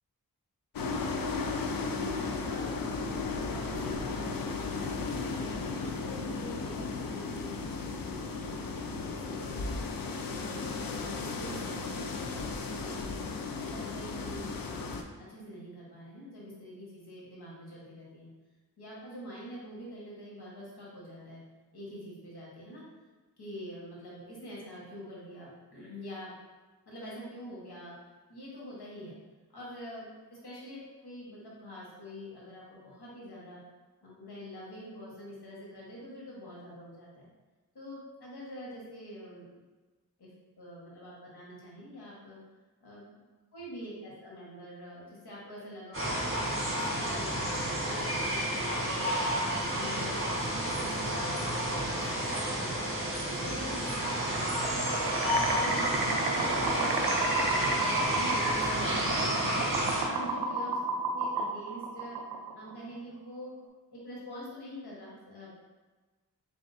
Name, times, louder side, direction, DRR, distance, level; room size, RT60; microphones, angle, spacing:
sound 1, 0.7-15.0, left 4 dB, 60° left, 0.5 m, -35 dB
voice 1, 2.2-4.7 5.1-9.8 10.2-13.2 13.6-18.3 18.8-21.4 21.7-22.8 23.4-26.3 26.9-27.9 28.3-29.1 29.5-30.8 31.0-33.6 34.0-37.3 37.7-39.5 40.2-42.4 42.8-43.1 43.5-49.2 49.7-52.7 53.1-54.8 55.2-55.8 56.3-59.7 60.0-60.8 61.1-62.2 62.5-63.5 63.9-65.6, equal, 80° left, -6 dB, 1.4 m, -45 dB
sound 2, 45.9-60.0, equal, 35° right, 1.3 m, -31 dB
sound 3, 54.3-62.7, right 3 dB, 85° right, 0.5 m, -32 dB
4.0 x 3.5 x 2.7 m, 1.3 s
cardioid pair, 45°, 38 cm